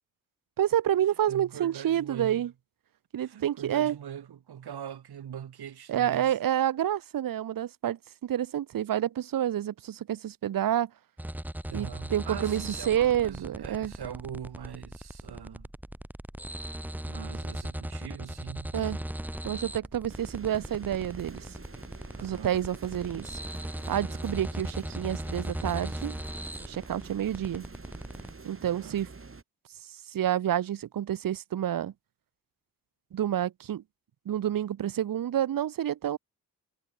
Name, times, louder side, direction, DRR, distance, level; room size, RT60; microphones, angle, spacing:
voice 1, 0.6-2.5 3.1-3.9 5.9-10.9 11.7-13.9 18.7-19.0 19.4-21.4 22.2-23.3 23.9-26.2 26.7-27.6 28.4-29.1 30.1-31.9 33.1-33.8 34.3-36.2, right 11 dB, 60° right, 0.8 m, -29 dB
voice 2, 1.3-2.5 3.2-6.3 11.7-15.7 17.0-18.8 22.1-22.6 28.6-29.0, right 9 dB, 85° right, 4.4 m, -42 dB
sound 1, 11.2-28.3, right 1 dB, 5° right, 0.7 m, -38 dB
sound 2, 20.1-29.4, right 4 dB, 35° right, 4.2 m, -47 dB
cardioid pair, 70°, 38 cm